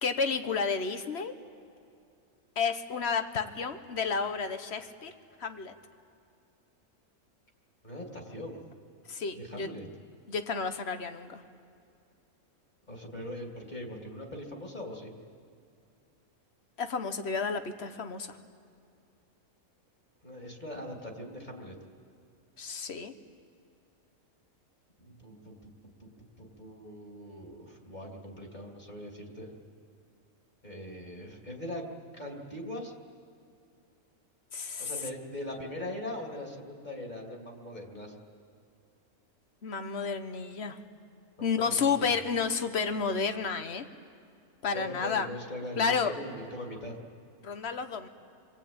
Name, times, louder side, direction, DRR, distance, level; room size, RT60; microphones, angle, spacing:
voice 1, 0.0-1.4 2.6-5.1 5.4-5.7 9.1-9.7 10.3-11.4 16.8-18.4 22.6-23.1 34.5-34.9 39.6-40.8 41.4-43.9 44.6-45.3 45.8-46.1 47.4-48.1, left 5 dB, 50° left, 9 dB, 1.4 m, -31 dB
voice 2, 7.8-8.6 9.3-9.9 12.9-15.1 20.2-21.8 25.0-25.7 26.0-29.5 30.6-31.8 32.1-32.9 34.8-38.2 41.4-42.1 44.7-47.0, left 1 dB, 30° left, 0 dB, 2.9 m, -41 dB
29.5 x 23.0 x 8.8 m, 2.4 s
omnidirectional pair, 1.5 m